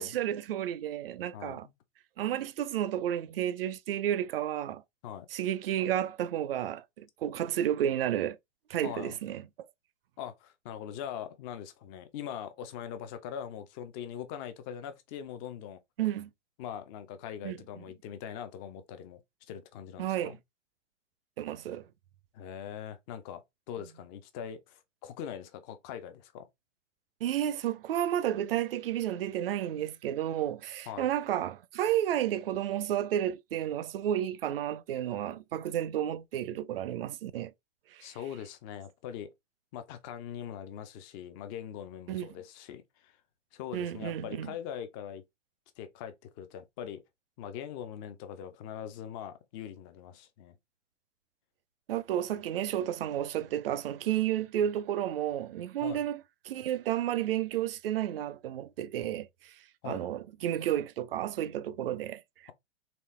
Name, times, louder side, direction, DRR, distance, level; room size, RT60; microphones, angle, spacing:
voice 1, 0.0-1.7 2.2-4.8 5.3-8.4 8.7-9.4 16.0-16.3 17.4-17.6 20.0-20.4 21.4-21.8 27.2-37.5 37.9-38.1 42.1-42.3 43.7-44.5 51.9-59.5 59.8-62.2, right 11 dB, 50° right, 0.5 m, -32 dB
voice 2, 1.3-1.7 5.0-5.3 8.8-9.2 10.2-15.8 16.6-19.2 19.5-20.4 22.3-26.5 30.9-31.1 38.0-39.3 39.7-43.2 43.5-45.2 45.8-47.0 47.4-50.6 55.8-56.0 59.8-60.0, left 9 dB, 20° left, 0.4 m, -42 dB
4.2 x 3.3 x 3.1 m
figure-of-eight pair, 110°, 38 cm